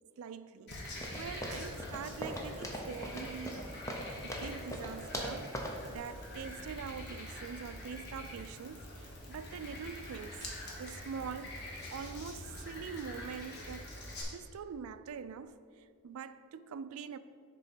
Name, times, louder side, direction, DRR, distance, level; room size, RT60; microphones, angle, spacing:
voice 1, 0.2-3.7 4.2-5.6 5.9-10.4 10.8-14.0 14.3-17.2, right 6 dB, 75° right, 0.3 m, -44 dB
Frog, 0.7-14.2, left 1 dB, 50° left, 1.4 m, -45 dB
sound 1, 1.0-5.9, equal, 15° left, 0.7 m, -41 dB
6.6 x 4.2 x 6.0 m
head